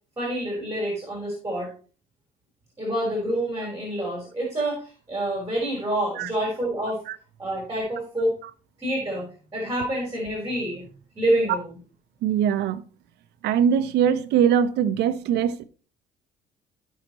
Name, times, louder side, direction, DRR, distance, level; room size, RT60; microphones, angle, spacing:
voice 1, 0.2-1.7 2.8-7.0 7.4-8.3 8.8-10.8 11.2-11.8, right 1 dB, 15° right, 4.2 m, -27 dB
voice 2, 12.2-12.8 13.4-15.6, right 8 dB, 80° right, 0.8 m, -22 dB
14.5 x 5.8 x 3.1 m
cardioid pair, 110°, 17 cm